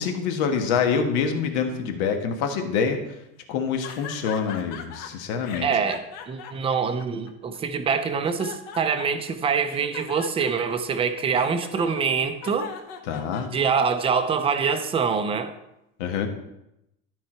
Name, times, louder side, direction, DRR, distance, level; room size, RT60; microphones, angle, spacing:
voice 1, 0.0-3.2 3.5-5.7 13.1-13.5 16.0-16.3, left 6 dB, 80° left, 5 dB, 1.4 m, -26 dB
sound 1, 3.8-5.1 5.4-7.6 8.0-9.3 9.7-13.9, left 7 dB, 65° left, 1.2 m, -40 dB
voice 2, 5.6-12.7 13.5-15.5, right 6 dB, 15° right, 8 dB, 0.5 m, -25 dB
12.5 x 4.6 x 4.3 m, 0.86 s
cardioid pair, 160°, 36 cm